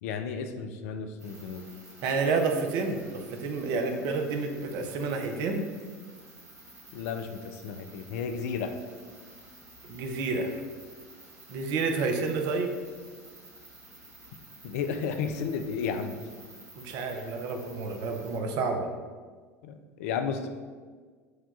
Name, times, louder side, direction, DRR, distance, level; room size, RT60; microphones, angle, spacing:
voice 1, 0.0-1.6 6.9-8.7 14.6-16.2 19.6-20.5, left 6 dB, 65° left, 7 dB, 0.4 m, -33 dB
sound 1, 1.2-18.4, right 2 dB, 85° right, 1.0 m, -51 dB
voice 2, 2.0-5.7 9.9-10.6 11.5-12.7 16.8-18.9, right 4 dB, 55° right, 4 dB, 0.6 m, -29 dB
4.8 x 2.3 x 4.2 m, 1.5 s
hypercardioid pair, 75°, 9 cm